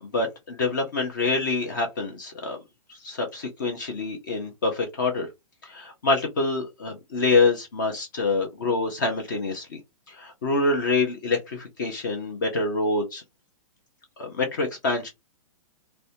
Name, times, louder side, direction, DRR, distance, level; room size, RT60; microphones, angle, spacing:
voice 1, 0.1-2.6 2.9-5.3 5.6-9.8 10.1-13.2 14.2-15.1, left 3 dB, 30° left, 0.5 m, -26 dB
2.5 x 2.1 x 2.8 m
hypercardioid pair, 180°, 19 cm